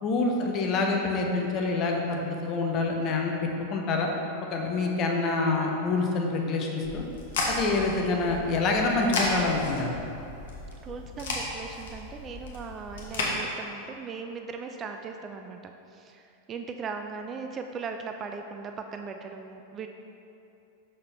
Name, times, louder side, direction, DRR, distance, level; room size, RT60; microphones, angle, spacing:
voice 1, 0.0-4.1 4.5-7.0 7.5-10.0, left 3 dB, 35° left, 1 dB, 0.8 m, -26 dB
sound 1, 6.8-13.3, left 2 dB, 55° left, 1.0 m, -34 dB
voice 2, 10.8-19.9, right 5 dB, 25° right, 5 dB, 0.3 m, -38 dB
6.4 x 5.6 x 3.1 m, 2.8 s
figure-of-eight pair, 90°, 0 cm